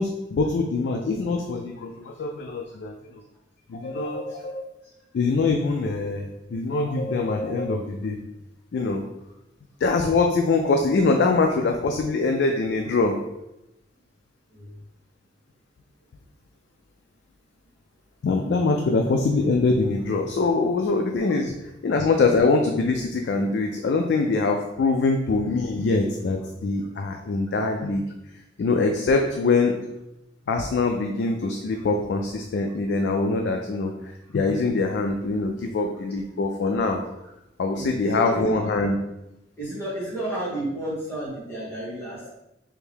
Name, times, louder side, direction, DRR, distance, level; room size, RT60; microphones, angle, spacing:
voice 1, 0.0-3.0 3.7-4.6 5.1-8.2 8.7-9.0 9.8-13.2 18.2-28.0 28.6-29.8 30.5-37.0 37.6-39.0, left 3 dB, 65° left, 3 dB, 0.3 m, -23 dB
voice 2, 37.8-38.6 39.6-42.3, right 1 dB, 15° left, -7 dB, 1.2 m, -31 dB
3.4 x 2.6 x 3.4 m, 0.89 s
head